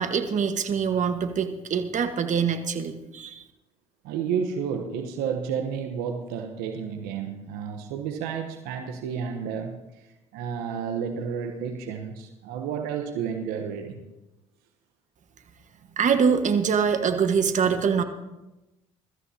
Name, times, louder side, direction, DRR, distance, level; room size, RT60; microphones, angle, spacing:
voice 1, 0.0-3.4 16.0-18.0, right 6 dB, 50° right, 1.4 m, -24 dB
voice 2, 4.0-14.0, right 7 dB, 75° right, 1.1 m, -31 dB
22.5 x 13.5 x 2.8 m
hypercardioid pair, 60°, 16 cm